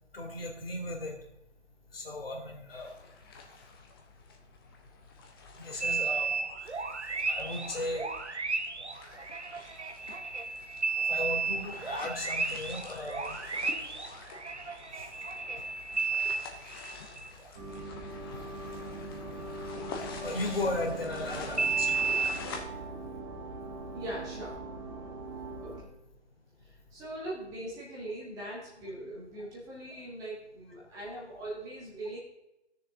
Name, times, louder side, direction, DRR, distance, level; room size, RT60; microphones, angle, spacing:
voice 1, 0.1-1.1 1.9-2.9 5.6-6.3 7.3-8.0 11.1-13.4 20.2-21.9, left 2 dB, 55° left, 2 dB, 3.0 m, -35 dB
sound 1, 2.7-22.6, left 4 dB, 20° left, 1.0 m, -48 dB
sound 2, 5.8-17.3 21.6-22.4, right 4 dB, 85° right, 1.3 m, -33 dB
sound 3, 17.5-25.8, right 2 dB, 25° right, 2.2 m, -41 dB
voice 2, 23.9-24.6 25.6-25.9 26.6-32.2, right 1 dB, 10° right, -5 dB, 1.7 m, -41 dB
14.5 x 6.7 x 3.8 m, 0.91 s
figure-of-eight pair, 150°, 34 cm